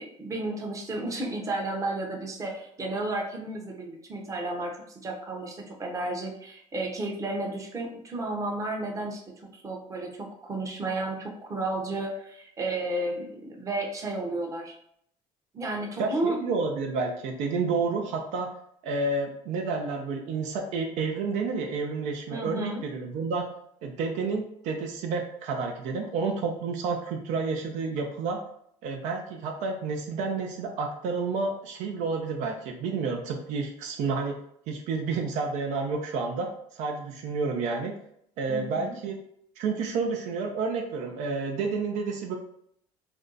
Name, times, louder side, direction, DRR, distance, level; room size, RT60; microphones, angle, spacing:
voice 1, 0.0-9.2 9.5-14.7 15.5-16.4 22.3-22.8 38.5-38.9, right 2 dB, 25° right, 0 dB, 0.7 m, -32 dB
voice 2, 16.0-18.5 18.8-23.5 23.8-28.4 28.8-34.4 34.7-36.5 36.7-37.9 38.4-39.2 39.6-42.4, right 4 dB, 70° right, 2 dB, 0.5 m, -30 dB
2.6 x 2.2 x 3.8 m, 0.70 s
cardioid pair, 115°, 12 cm